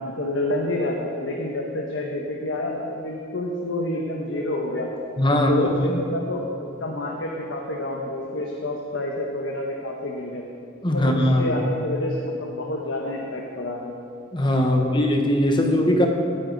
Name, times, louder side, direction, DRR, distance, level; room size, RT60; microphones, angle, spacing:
voice 1, 0.0-4.9 5.3-6.4 6.8-10.4 10.9-13.9 14.7-14.9 15.6-15.7, left 1 dB, 70° left, 0 dB, 1.2 m, -28 dB
voice 2, 5.2-6.0 10.8-11.6 14.3-16.1, left 1 dB, 25° left, 3 dB, 1.2 m, -20 dB
18.0 x 9.8 x 4.1 m, 2.6 s
head